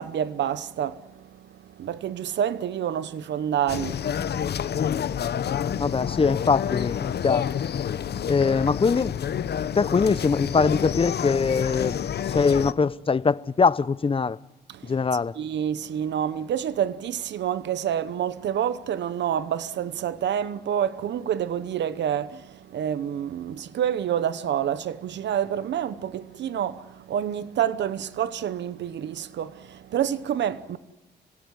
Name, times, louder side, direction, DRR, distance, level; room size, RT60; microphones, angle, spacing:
voice 1, 0.0-5.4 14.7-15.0 15.4-30.8, right 9 dB, 85° right, 1.0 m, -28 dB
sound 1, 3.7-12.7, left 9 dB, 65° left, 0.9 m, -28 dB
voice 2, 5.8-7.5 8.3-9.2 9.8-12.0 12.3-14.4 14.8-15.3, left 5 dB, 30° left, 0.7 m, -22 dB
25.0 x 17.0 x 9.8 m
cardioid pair, 95°, 18 cm